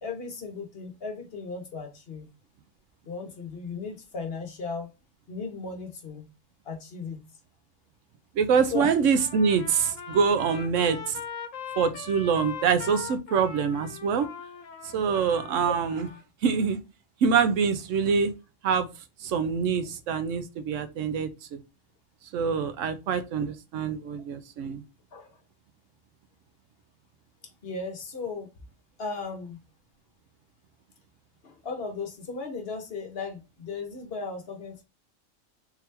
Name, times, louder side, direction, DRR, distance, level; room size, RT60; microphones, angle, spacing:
voice 1, 0.0-2.3 3.1-4.9 5.3-6.3 6.6-7.2 8.7-8.9 15.6-15.7 25.1-25.4 27.6-28.5 29.0-29.6 31.4-34.8, left 4 dB, 55° left, 1.1 m, -36 dB
voice 2, 8.4-11.2 11.8-14.3 14.9-16.1 16.4-16.8 17.2-18.3 18.6-18.9 19.2-21.6 22.3-24.8, right 6 dB, 75° right, 1.0 m, -25 dB
Trumpet, 9.1-16.2, left 6 dB, 80° left, 1.1 m, -41 dB
3.7 x 3.0 x 3.2 m
omnidirectional pair, 1.3 m